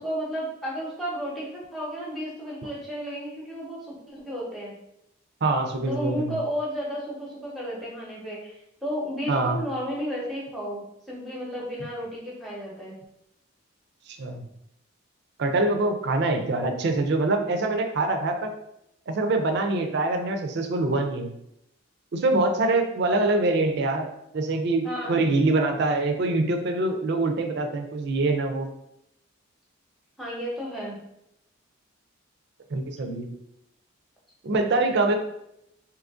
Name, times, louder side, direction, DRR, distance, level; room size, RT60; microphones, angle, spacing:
voice 1, 0.0-4.7 5.9-8.5 8.8-12.9 22.6-22.8 24.8-25.2 30.2-31.0, equal, ahead, -6 dB, 0.8 m, -33 dB
voice 2, 5.4-6.4 9.3-9.6 14.2-14.4 15.4-18.5 19.1-21.3 22.1-28.7 32.7-33.3 34.4-35.2, right 2 dB, 55° right, 5 dB, 0.4 m, -24 dB
2.8 x 2.5 x 3.5 m, 0.81 s
head